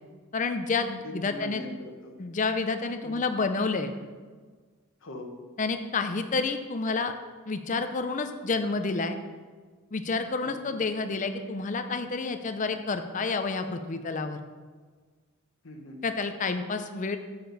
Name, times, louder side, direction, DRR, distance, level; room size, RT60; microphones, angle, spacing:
voice 1, 0.3-1.6 2.2-4.0 5.6-7.1 7.5-9.2 9.9-14.4 16.0-17.2, left 4 dB, 35° left, 8 dB, 0.5 m, -29 dB
voice 2, 1.0-2.1 3.0-3.1 5.0-5.3 10.4-10.8 15.6-16.0, left 1 dB, 60° left, 3 dB, 1.0 m, -41 dB
8.9 x 6.8 x 4.0 m, 1.5 s
head